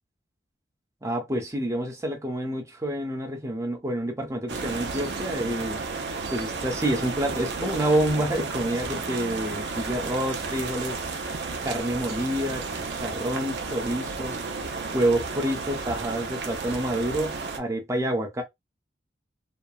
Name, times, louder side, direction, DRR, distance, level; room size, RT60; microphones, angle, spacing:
voice 1, 1.0-5.8 6.3-11.0 11.6-12.6 12.9-14.4 14.9-18.4, right 1 dB, 15° right, 0.7 m, -28 dB
sound 1, 4.5-17.6, right 4 dB, 70° right, 0.6 m, -32 dB
3.0 x 2.1 x 2.3 m
head